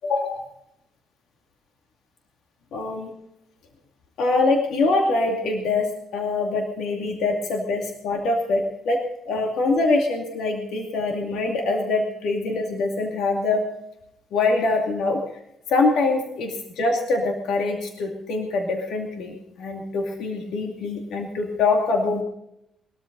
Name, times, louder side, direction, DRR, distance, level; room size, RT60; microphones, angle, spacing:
voice 1, 0.0-0.4 2.7-3.1 4.2-13.6 14.3-15.2 15.7-22.2, left 3 dB, 75° left, 1 dB, 2.5 m, -24 dB
21.5 x 14.0 x 4.0 m, 0.79 s
cardioid pair, 140°, 0 cm